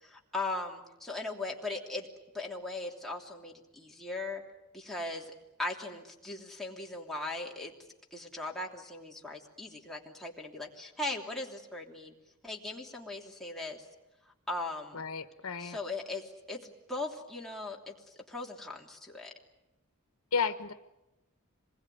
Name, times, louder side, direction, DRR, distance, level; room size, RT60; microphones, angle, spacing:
voice 1, 0.0-2.1 2.3-4.4 4.7-5.3 5.6-7.7 8.1-12.1 12.4-13.8 14.5-15.0 15.6-17.9 18.3-19.3, left 2 dB, ahead, -2 dB, 3.1 m, -39 dB
voice 2, 14.9-15.8 20.3-20.7, left 5 dB, 70° left, 9 dB, 1.2 m, -32 dB
26.5 x 21.0 x 9.3 m, 0.97 s
head